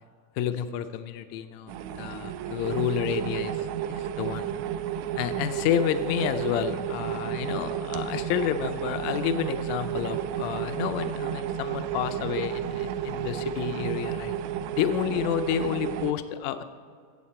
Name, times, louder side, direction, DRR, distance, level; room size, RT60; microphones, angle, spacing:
voice 1, 0.3-3.6 3.9-4.5 5.2-14.3 14.8-16.6, left 9 dB, 85° left, 10 dB, 1.6 m, -30 dB
sound 1, 1.7-16.1, right 10 dB, 85° right, 1.6 m, -32 dB
16.5 x 7.2 x 4.3 m, 2.1 s
omnidirectional pair, 3.8 m